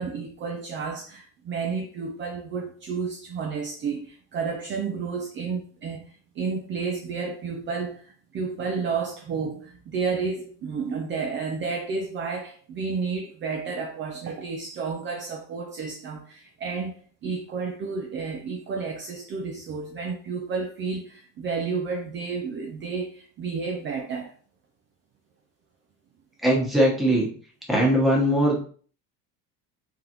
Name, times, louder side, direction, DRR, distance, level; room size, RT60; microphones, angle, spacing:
voice 1, 0.0-16.9 17.2-24.3, right 5 dB, 35° right, 0.5 m, -31 dB
voice 2, 26.4-27.3 27.7-28.6, equal, ahead, 1.2 m, -20 dB
3.9 x 3.3 x 3.0 m
cardioid pair, 155°, 35 cm